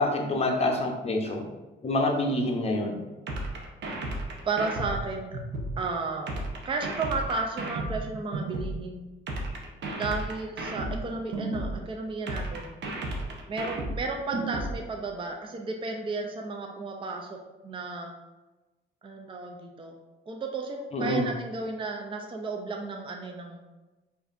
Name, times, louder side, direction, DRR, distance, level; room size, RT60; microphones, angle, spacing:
voice 1, 0.0-1.4 1.8-3.0 20.9-21.2, left 2 dB, 30° left, 1 dB, 0.8 m, -26 dB
sound 1, 3.3-5.8 6.3-8.8 9.3-11.8 12.3-14.8, right 2 dB, 60° right, 0.8 m, -33 dB
voice 2, 4.4-5.4 5.8-6.3 6.6-9.0 10.0-12.8 13.5-18.1 19.0-19.9 20.3-23.6, right 3 dB, 25° right, 3 dB, 0.5 m, -33 dB
4.8 x 2.6 x 2.5 m, 1.1 s
cardioid pair, 90°, 20 cm